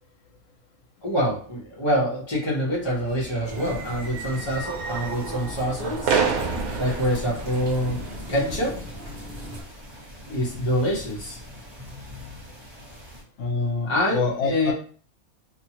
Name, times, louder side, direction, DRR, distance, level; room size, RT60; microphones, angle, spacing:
voice 1, 1.0-6.2 6.8-8.0 8.3-8.8 10.3-11.4 13.9-14.7, equal, 20° left, -5 dB, 0.9 m, -25 dB
sound 1, 2.8-8.2, right 5 dB, 85° right, 1.0 m, -30 dB
sound 2, 3.4-9.6, equal, 45° right, 0.7 m, -38 dB
sound 3, 6.3-13.2, equal, 20° right, 1.1 m, -40 dB
voice 2, 13.4-14.7, left 4 dB, 70° left, 2 dB, 1.1 m, -26 dB
2.7 x 2.5 x 2.9 m, 0.43 s
omnidirectional pair, 1.5 m